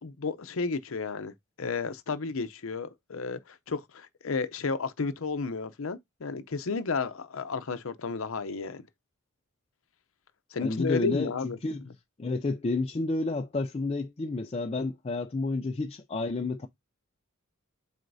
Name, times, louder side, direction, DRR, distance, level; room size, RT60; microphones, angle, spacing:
voice 1, 0.0-1.3 1.6-8.8 10.5-11.6, left 4 dB, 70° left, 0.6 m, -32 dB
voice 2, 10.6-11.9 12.2-16.7, left 3 dB, 30° left, 0.4 m, -30 dB
7.8 x 4.9 x 2.7 m
head